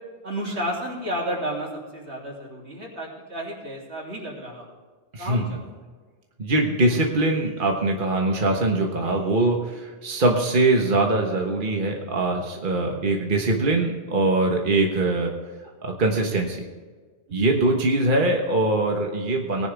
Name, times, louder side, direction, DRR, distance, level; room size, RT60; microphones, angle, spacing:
voice 1, 0.2-4.7 5.2-5.6 9.0-9.1 12.8-13.1, equal, 85° right, -2 dB, 3.4 m, -32 dB
voice 2, 6.4-15.3 15.8-16.6 17.3-19.7, right 2 dB, 50° right, 1 dB, 1.5 m, -22 dB
18.0 x 11.0 x 3.5 m, 1.4 s
omnidirectional pair, 1.1 m